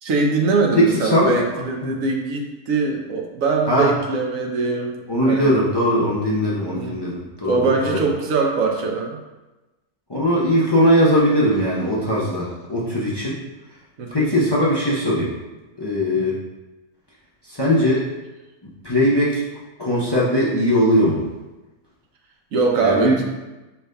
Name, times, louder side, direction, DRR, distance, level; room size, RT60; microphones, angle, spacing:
voice 1, 0.0-5.6 6.7-7.0 7.4-9.2 14.0-14.3 16.1-16.3 22.5-23.2, right 3 dB, 65° right, 1 dB, 1.0 m, -22 dB
voice 2, 0.8-1.9 3.7-3.9 5.1-8.0 10.1-13.4 14.1-15.3 15.8-16.4 17.4-18.0 18.8-19.4 19.8-21.3 22.8-23.2, equal, 30° left, -7 dB, 0.4 m, -19 dB
5.0 x 4.5 x 2.2 m, 1.1 s
omnidirectional pair, 1.6 m